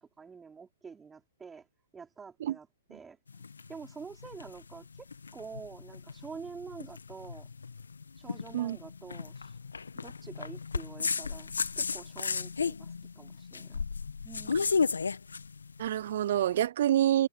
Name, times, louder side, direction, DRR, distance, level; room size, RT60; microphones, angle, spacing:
voice 1, 0.0-1.7 1.9-3.2 3.7-5.1 5.3-7.5 8.2-9.6 10.0-13.9 14.2-14.8, right 5 dB, 15° right, 3.8 m, -47 dB
sound 1, 3.3-16.5, left 5 dB, 80° left, 1.4 m, -34 dB
voice 2, 15.8-17.3, right 11 dB, 55° right, 0.4 m, -27 dB
figure-of-eight pair, 120°, 0 cm